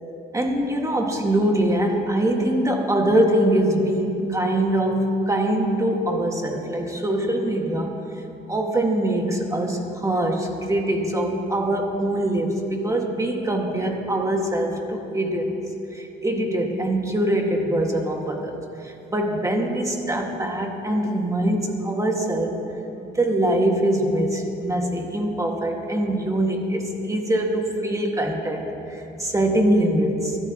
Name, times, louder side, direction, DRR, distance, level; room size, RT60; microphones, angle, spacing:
voice 1, 0.3-8.0 8.5-15.5 15.9-18.6 18.8-22.6 23.0-30.4, right 1 dB, 15° right, 1 dB, 2.0 m, -23 dB
23.0 x 14.0 x 3.1 m, 2.8 s
cardioid pair, 90°, 20 cm